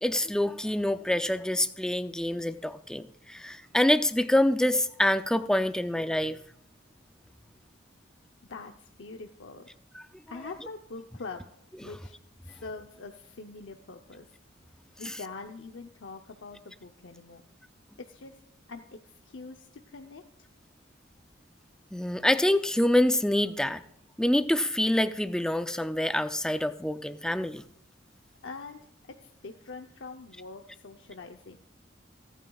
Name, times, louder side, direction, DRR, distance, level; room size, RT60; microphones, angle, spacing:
voice 1, 0.0-6.4 15.1-15.2 21.9-23.8 24.2-27.6, left 1 dB, 5° left, 10 dB, 0.4 m, -26 dB
voice 2, 8.5-9.7 10.3-11.5 11.8-12.2 12.4-14.4 15.0-17.4 18.0-18.4 18.7-20.5 28.4-28.8 29.2-31.6, left 4 dB, 75° left, 4 dB, 0.7 m, -44 dB
27.0 x 9.1 x 2.4 m, 0.78 s
head